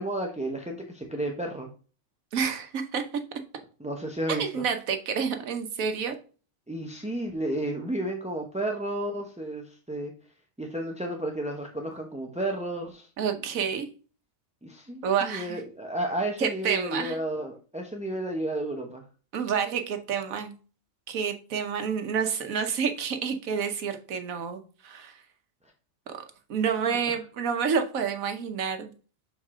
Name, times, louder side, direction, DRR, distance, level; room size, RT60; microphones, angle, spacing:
voice 1, 0.0-1.7 3.8-4.6 6.7-10.1 10.6-13.1 14.6-19.0, right 1 dB, 10° right, 2 dB, 0.5 m, -32 dB
voice 2, 2.3-3.0 4.3-6.1 13.2-13.9 15.0-15.6 16.4-17.2 19.3-20.5 21.1-25.2 26.1-26.2 26.5-28.9, right 6 dB, 80° right, 7 dB, 1.4 m, -29 dB
6.5 x 4.6 x 3.6 m, 0.37 s
omnidirectional pair, 1.4 m